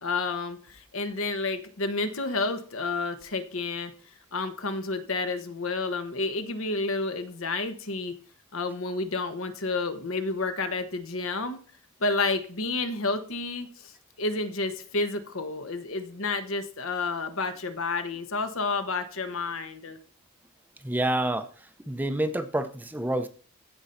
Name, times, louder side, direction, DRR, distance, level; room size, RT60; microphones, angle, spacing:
voice 1, 0.0-3.9 4.3-8.1 8.5-11.6 12.0-20.0, left 3 dB, 65° left, 9 dB, 1.2 m, -30 dB
voice 2, 20.8-21.5 21.9-23.3, right 1 dB, 10° right, 9 dB, 0.6 m, -27 dB
15.0 x 5.4 x 4.4 m, 0.43 s
head